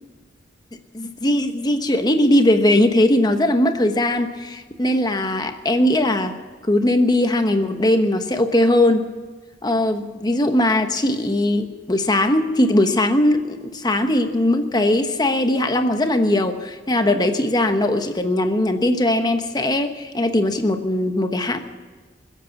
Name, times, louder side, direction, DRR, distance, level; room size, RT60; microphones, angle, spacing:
voice 1, 0.9-6.4 6.7-9.1 9.6-21.6, left 1 dB, 20° left, 7 dB, 1.1 m, -19 dB
21.0 x 8.3 x 8.2 m, 1.4 s
head